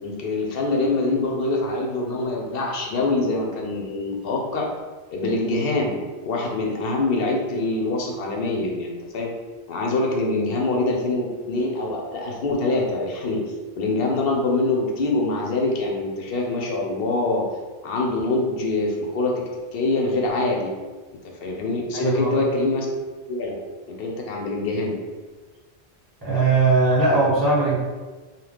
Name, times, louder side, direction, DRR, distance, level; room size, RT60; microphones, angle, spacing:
voice 1, 0.0-4.7 5.1-9.3 9.7-13.4 13.8-17.5 17.8-19.4 19.7-20.7 21.4-22.9 23.3-23.6 23.9-25.0, left 2 dB, 65° left, 0 dB, 0.7 m, -24 dB
voice 2, 21.9-22.3 26.2-27.8, right 3 dB, 20° right, -7 dB, 0.9 m, -19 dB
2.8 x 2.0 x 3.4 m, 1.3 s
omnidirectional pair, 1.1 m